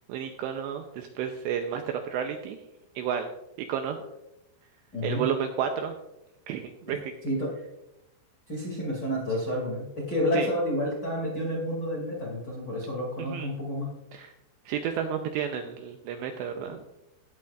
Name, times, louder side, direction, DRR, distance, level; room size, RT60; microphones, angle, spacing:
voice 1, 0.1-2.6 3.0-3.3 3.7-4.0 5.0-5.9 6.5-7.1 10.3-10.5 13.2-13.5 14.1-14.3 14.7-16.8, right 8 dB, 85° right, 5 dB, 2.5 m, -31 dB
voice 2, 4.9-5.2 6.9-7.0 7.2-7.5 8.5-13.9, left 1 dB, 30° left, -4 dB, 2.0 m, -30 dB
18.0 x 8.4 x 2.4 m, 0.90 s
omnidirectional pair, 5.6 m